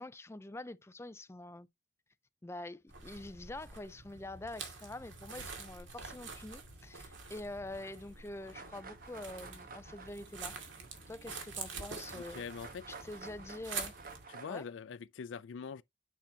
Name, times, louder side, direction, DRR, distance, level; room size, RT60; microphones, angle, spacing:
voice 1, 0.0-1.7 2.4-10.6 11.1-12.4 12.9-13.9 14.5-14.7, left 2 dB, 15° left, 0.4 m, -45 dB
sound 1, 2.9-14.3, right 5 dB, 90° right, 2.1 m, -47 dB
sound 2, 8.5-11.7 12.0-14.6, right 4 dB, 50° right, 1.1 m, -52 dB
voice 2, 12.1-13.0 14.3-15.8, left 6 dB, 85° left, 0.4 m, -44 dB
8.3 x 5.7 x 2.8 m
head